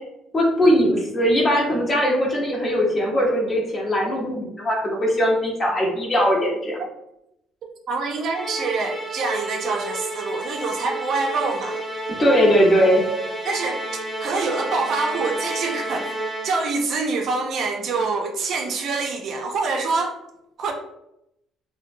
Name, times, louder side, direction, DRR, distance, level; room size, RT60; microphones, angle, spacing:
voice 1, 0.3-6.8 12.2-13.0, equal, 35° left, -2 dB, 0.9 m, -20 dB
voice 2, 7.9-11.8 13.5-13.8 14.2-20.2 20.6-20.7, right 4 dB, 65° right, 2 dB, 0.4 m, -25 dB
Musical instrument, 8.3-16.8, right 1 dB, 10° right, 0.6 m, -31 dB
2.6 x 2.1 x 2.5 m, 0.82 s
supercardioid pair, 80°, 0 cm